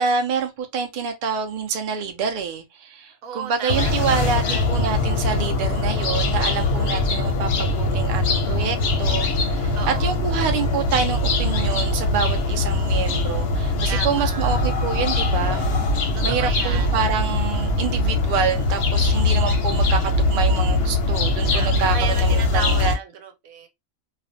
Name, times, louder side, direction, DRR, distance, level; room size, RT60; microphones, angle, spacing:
voice 1, 0.0-15.7 16.2-23.0, right 6 dB, 65° right, 0.5 m, -27 dB
voice 2, 3.2-4.7 9.7-10.2 13.9-14.6 16.1-16.9 21.5-23.7, right 6 dB, 90° right, 1.1 m, -34 dB
sound 1, 3.7-22.9, left 2 dB, 60° left, 0.7 m, -22 dB
2.4 x 2.0 x 2.5 m
omnidirectional pair, 1.4 m